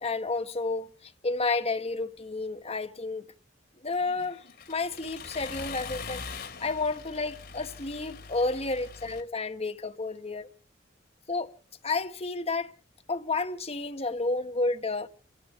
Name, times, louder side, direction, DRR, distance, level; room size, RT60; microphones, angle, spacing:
voice 1, 0.0-3.3 3.8-10.5 11.3-11.6 11.8-12.7 13.1-15.1, left 3 dB, 35° left, 1.2 m, -31 dB
Accelerating revving vroom, 3.9-9.2, left 5 dB, 60° left, 2.5 m, -42 dB
30.0 x 13.5 x 3.2 m
head